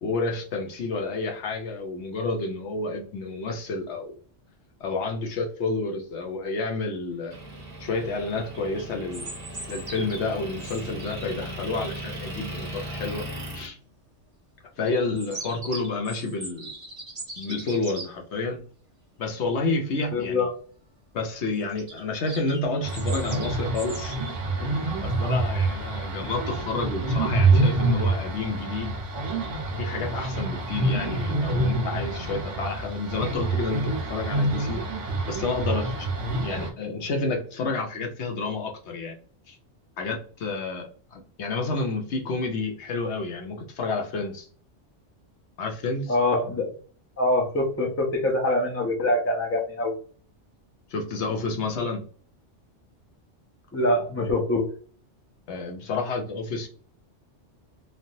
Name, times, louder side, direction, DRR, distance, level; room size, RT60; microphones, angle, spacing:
voice 1, 0.0-4.0 4.8-7.3 7.8-9.3 9.7-13.2 13.5-13.8 14.8-16.7 17.4-18.6 19.2-20.5 21.1-24.2 24.6-28.9 29.8-34.8 35.3-36.1 36.4-39.2 39.5-39.6 40.0-44.5 45.6-46.1 50.9-52.0 55.5-56.7, left 3 dB, 70° left, 2 dB, 0.9 m, -30 dB
Motor vehicle (road) / Engine, 7.3-13.7, equal, 50° right, 1.2 m, -37 dB
sound 1, 8.5-11.5 14.8-18.1 21.7-24.4, right 2 dB, 30° right, 1.0 m, -40 dB
voice 2, 20.1-20.5 46.1-46.7 47.2-49.9 53.7-54.7, left 2 dB, 20° left, 1 dB, 0.3 m, -24 dB
sound 2, 22.8-36.7, right 2 dB, 85° right, 1.2 m, -26 dB
3.2 x 2.3 x 2.6 m, 0.43 s
omnidirectional pair, 1.2 m